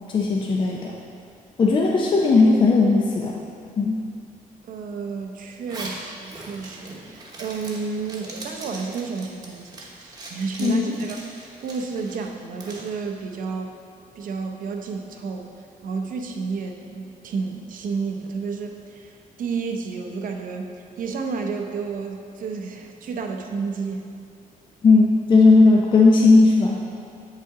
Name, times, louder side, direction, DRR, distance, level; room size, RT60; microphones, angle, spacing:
voice 1, 0.1-1.0 1.6-3.4 3.8-4.0 10.6-11.1 24.8-26.8, left 3 dB, 35° left, -1 dB, 0.5 m, -17 dB
voice 2, 4.6-13.8 14.1-15.6 15.8-24.1, right 4 dB, 65° right, 3 dB, 0.6 m, -31 dB
Zipper (clothing), 5.7-12.9, right 2 dB, 25° right, 1.0 m, -40 dB
7.7 x 5.6 x 3.6 m, 2.5 s
wide cardioid pair, 165°, 15 cm